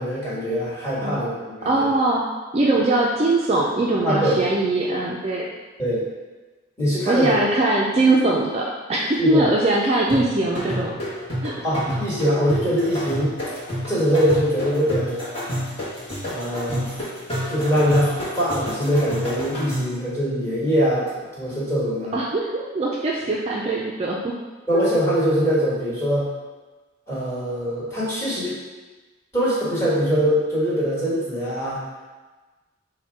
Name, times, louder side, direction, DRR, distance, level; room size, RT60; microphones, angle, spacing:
voice 1, 0.0-1.9 4.0-4.4 5.8-6.0 6.8-7.3 9.2-9.5 11.6-13.3 13.9-15.2 16.3-16.9 17.5-22.1 24.7-26.3 27.1-28.5 29.3-31.8, equal, 15° left, -9 dB, 1.4 m, -22 dB
voice 2, 1.6-2.2 2.5-5.5 7.1-10.9 11.4-11.5 22.1-24.3, right 2 dB, 30° right, -3 dB, 0.3 m, -21 dB
sound 1, 10.1-20.0, equal, 30° left, 1.0 m, -30 dB
4.2 x 2.1 x 4.5 m, 1.3 s
head